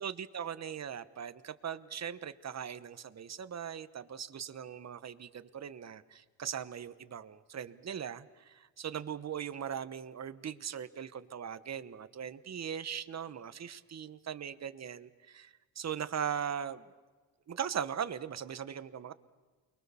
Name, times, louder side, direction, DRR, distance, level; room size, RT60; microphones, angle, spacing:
voice 1, 0.0-16.8 17.5-19.1, right 8 dB, 35° right, 13 dB, 1.2 m, -39 dB
29.0 x 22.0 x 7.1 m, 1.4 s
cardioid pair, 100°, 44 cm